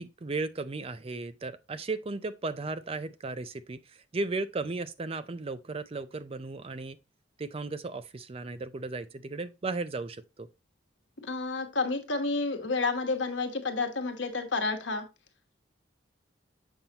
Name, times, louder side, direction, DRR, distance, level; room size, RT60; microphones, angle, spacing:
voice 1, 0.0-7.0 7.4-10.5, right 3 dB, 30° right, 0.4 m, -35 dB
voice 2, 11.2-15.1, left 3 dB, 75° left, 1.2 m, -30 dB
7.2 x 5.6 x 2.9 m
head